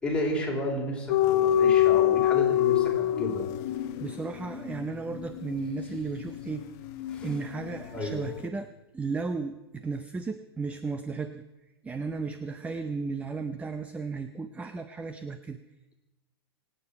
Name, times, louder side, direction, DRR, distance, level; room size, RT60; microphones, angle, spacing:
voice 1, 0.0-3.5 7.1-7.3 7.9-8.1, left 1 dB, 10° left, -3 dB, 4.9 m, -32 dB
sound 1, 1.1-7.9 8.1-8.4, left 11 dB, 45° left, 1.0 m, -26 dB
voice 2, 4.0-6.7 7.2-8.7 8.9-11.4 11.8-15.6, right 4 dB, 10° right, 10 dB, 0.7 m, -34 dB
25.5 x 9.1 x 5.8 m, 1.0 s
hypercardioid pair, 110°, 13 cm